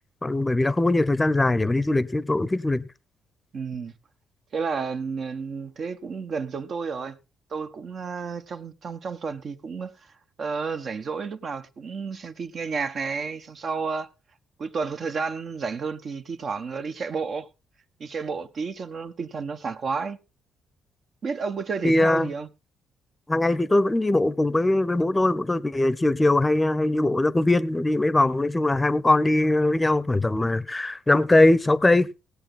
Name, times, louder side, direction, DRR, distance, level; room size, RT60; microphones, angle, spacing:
voice 1, 0.2-2.9 21.8-22.3 23.3-32.1, left 2 dB, 15° left, 0.7 m, -21 dB
voice 2, 3.5-3.9 4.5-7.2 7.5-10.0 10.4-14.1 14.6-17.5 18.0-20.2 21.2-22.5, right 5 dB, 50° right, 1.2 m, -31 dB
18.0 x 8.2 x 3.8 m
cardioid pair, 90°, 0 cm